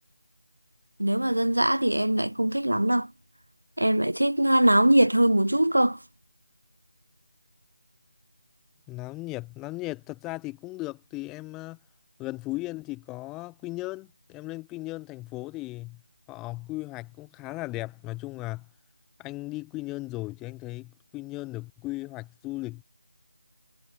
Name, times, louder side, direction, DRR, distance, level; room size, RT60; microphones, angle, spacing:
voice 1, 1.0-3.1 3.8-6.0, right 1 dB, 75° right, 0.8 m, -22 dB
voice 2, 8.9-11.8 12.2-16.0 16.3-18.7 19.2-22.8, left 20 dB, 10° left, 6.7 m, -36 dB
figure-of-eight pair, 160°, 0 cm